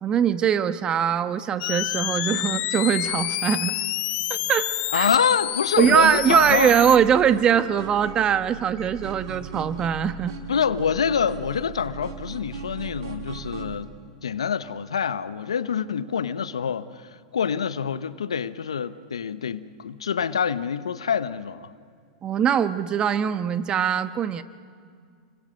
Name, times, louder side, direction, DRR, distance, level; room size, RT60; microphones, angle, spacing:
voice 1, 0.0-3.8 4.3-5.1 5.8-10.3 22.2-24.4, right 8 dB, 30° right, 1.2 m, -22 dB
sound 1, 1.6-7.0, left 16 dB, 45° left, 0.9 m, -28 dB
voice 2, 4.9-6.7 10.5-13.9 14.2-21.7, left 7 dB, 85° left, 1.0 m, -26 dB
sound 2, 5.8-13.7, right 6 dB, 70° right, 4.4 m, -38 dB
30.0 x 24.0 x 6.4 m
hypercardioid pair, 100°, 3 cm